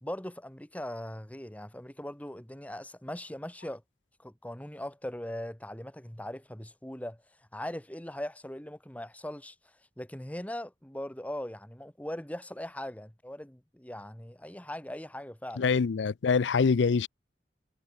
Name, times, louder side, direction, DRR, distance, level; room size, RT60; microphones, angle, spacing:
voice 1, 0.0-3.8 4.2-7.2 7.5-9.5 10.0-15.7, left 1 dB, 10° left, 1.4 m, -40 dB
voice 2, 15.6-17.1, left 5 dB, 90° left, 0.5 m, -25 dB
head